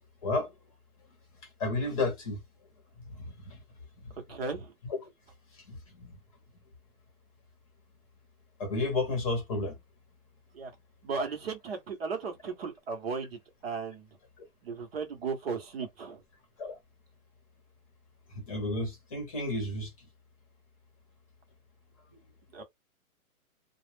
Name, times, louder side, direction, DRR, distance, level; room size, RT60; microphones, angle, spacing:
voice 1, 1.6-2.4 3.5-3.6 6.0-6.1 8.6-9.7 16.6-16.8 18.3-19.9, left 2 dB, 25° left, 0.9 m, -31 dB
voice 2, 4.3-4.7 10.5-10.7 11.0-14.1 14.6-16.2 22.5-22.6, right 5 dB, 45° right, 0.8 m, -36 dB
2.3 x 2.0 x 3.2 m
hypercardioid pair, 165°, 43 cm